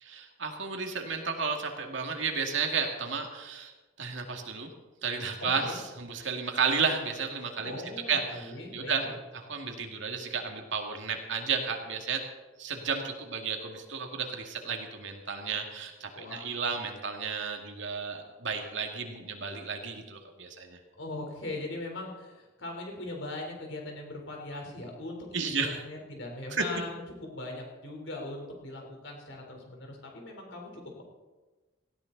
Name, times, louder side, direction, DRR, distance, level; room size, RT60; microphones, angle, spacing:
voice 1, 0.0-3.7 4.0-4.7 5.0-7.8 8.1-9.1 9.5-12.2 12.6-20.8 25.3-25.8 26.5-26.6, right 5 dB, 70° right, 3 dB, 2.3 m, -32 dB
voice 2, 5.4-5.8 7.6-9.1 16.2-16.7 21.0-31.0, left 2 dB, 70° left, 1 dB, 3.9 m, -40 dB
18.0 x 15.5 x 4.1 m, 1.2 s
head